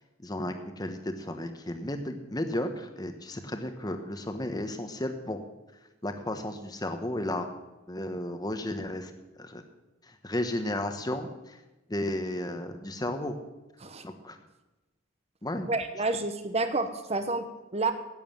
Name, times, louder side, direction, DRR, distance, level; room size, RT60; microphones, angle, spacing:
voice 1, 0.2-5.4 6.0-7.5 7.9-9.1 9.4-9.6 10.0-11.6 11.9-13.4 14.0-14.4 15.4-15.7, left 1 dB, 20° left, 7 dB, 1.2 m, -33 dB
voice 2, 15.7-17.9, right 3 dB, 30° right, 9 dB, 1.0 m, -29 dB
11.0 x 9.4 x 7.6 m, 1.0 s
head